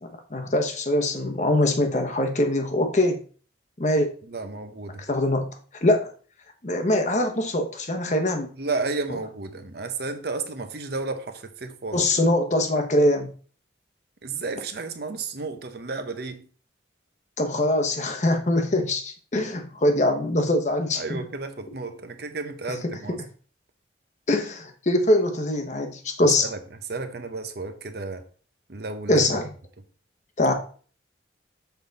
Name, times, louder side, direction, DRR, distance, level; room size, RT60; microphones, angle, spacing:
voice 1, 0.0-3.2 3.8-4.1 5.1-5.5 5.8-6.1 6.6-8.5 11.9-13.3 17.4-21.2 24.3-26.5 29.1-29.4 30.4-30.5, left 1 dB, 40° left, 1.0 m, -23 dB
voice 2, 4.3-5.0 8.5-12.1 14.2-16.5 20.9-23.2 26.2-28.2 28.7-29.2, right 3 dB, 60° right, 0.8 m, -32 dB
6.9 x 4.0 x 4.0 m
head